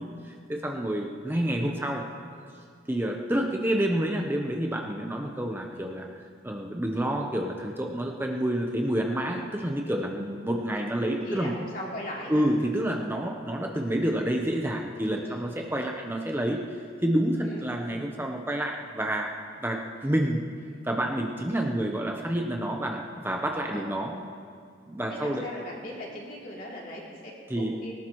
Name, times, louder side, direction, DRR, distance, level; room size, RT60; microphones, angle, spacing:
voice 1, 0.0-2.0 2.9-6.1 6.4-11.5 12.3-16.6 17.0-19.4 19.6-20.4 20.8-24.1 24.9-25.4 27.5-27.7, right 1 dB, 10° right, 1 dB, 0.7 m, -28 dB
voice 2, 11.2-12.5 15.2-15.5 17.4-17.6 23.7-23.9 25.1-27.9, left 1 dB, 50° left, -4 dB, 3.1 m, -39 dB
19.0 x 18.0 x 3.1 m, 2.3 s
head